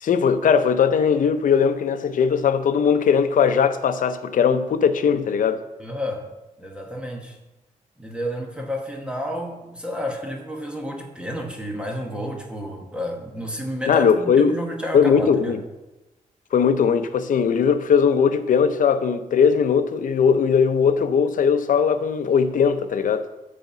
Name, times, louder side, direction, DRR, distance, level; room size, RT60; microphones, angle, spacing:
voice 1, 0.0-5.6 13.9-14.6 14.9-15.6 16.5-23.3, left 6 dB, 70° left, 0.6 m, -19 dB
voice 2, 5.8-6.3 6.6-7.4 8.0-15.6, equal, 5° right, 1.2 m, -31 dB
9.2 x 4.3 x 7.2 m
wide cardioid pair, 150°, 14 cm